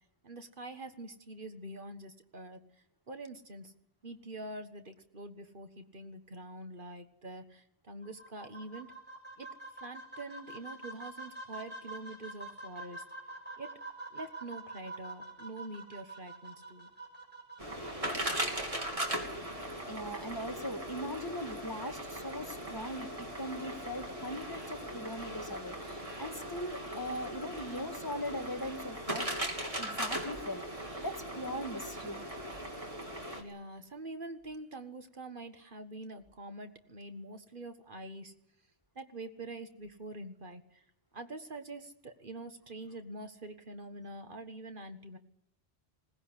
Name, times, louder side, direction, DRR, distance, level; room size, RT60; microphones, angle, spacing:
voice 1, 0.2-2.6 3.1-3.7 4.0-8.9 9.4-9.5 9.8-13.0 13.6-13.7 14.1-16.9 33.3-38.3 38.9-40.8 41.1-45.2, right 2 dB, 55° right, 7 dB, 1.7 m, -45 dB
sound 1, 8.0-19.0, right 2 dB, 10° right, 6.2 m, -47 dB
sound 2, 17.6-33.4, right 1 dB, 35° right, 3.2 m, -39 dB
voice 2, 19.9-29.3 29.8-30.7 31.0-32.2 42.8-43.0, equal, 20° left, 5 dB, 1.8 m, -40 dB
20.5 x 18.5 x 9.9 m, 0.73 s
omnidirectional pair, 1.1 m